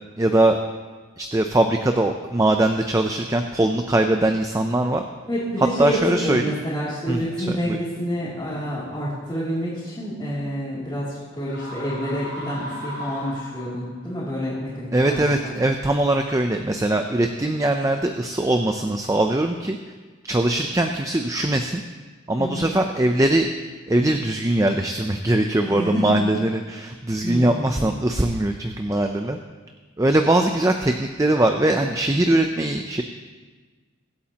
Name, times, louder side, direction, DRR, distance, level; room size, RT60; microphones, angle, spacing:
voice 1, 0.2-0.6 1.2-5.0 5.6-6.5 7.1-7.8 14.9-19.8 20.2-21.8 22.3-23.5 23.9-29.4 30.0-33.0, right 1 dB, 15° right, 5 dB, 0.5 m, -21 dB
voice 2, 5.2-15.5 22.4-22.7 25.6-26.2 27.2-27.9, equal, 20° left, -11 dB, 2.8 m, -28 dB
sound 1, 11.4-14.0, equal, 60° left, 4.5 m, -36 dB
23.5 x 8.5 x 2.9 m, 1.4 s
head